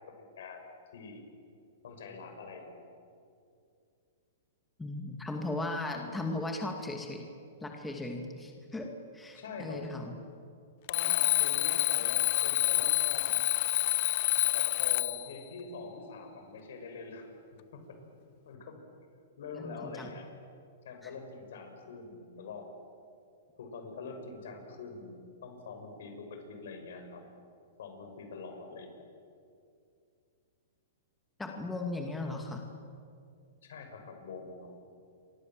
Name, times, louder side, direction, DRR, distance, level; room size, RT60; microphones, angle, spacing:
voice 1, 0.2-0.6 0.9-1.3 1.8-2.9 9.4-9.9 10.9-13.4 14.5-17.3 17.7-18.0 18.4-18.8 19.4-20.3 20.8-22.7 23.6-27.3 27.8-29.0 33.6-34.7, left 4 dB, 70° left, 5 dB, 6.3 m, -44 dB
voice 2, 4.8-7.3 7.6-10.1 19.5-20.1 21.0-21.1 31.4-32.6, left 2 dB, 5° left, 2 dB, 2.4 m, -37 dB
Alarm, 10.9-15.3, left 20 dB, 45° left, 0.8 m, -28 dB
28.5 x 24.0 x 7.6 m, 2.4 s
hypercardioid pair, 145°, 0 cm